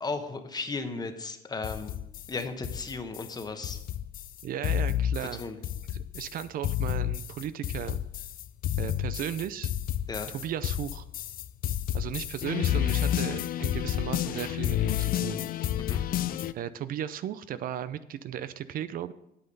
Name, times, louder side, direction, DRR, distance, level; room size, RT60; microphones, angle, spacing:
voice 1, 0.0-1.9 2.3-3.8 5.4-5.6 10.1-10.3 15.8-16.0, left 4 dB, 25° left, 7 dB, 1.1 m, -35 dB
sound 1, 1.6-16.5, left 11 dB, 60° left, 0.5 m, -30 dB
voice 2, 4.4-5.4 5.9-8.0 8.8-9.7 10.3-11.0 11.9-15.5 16.5-19.1, right 10 dB, 55° right, 14 dB, 0.5 m, -35 dB
8.6 x 7.9 x 5.3 m, 0.85 s
cardioid pair, 110°, 17 cm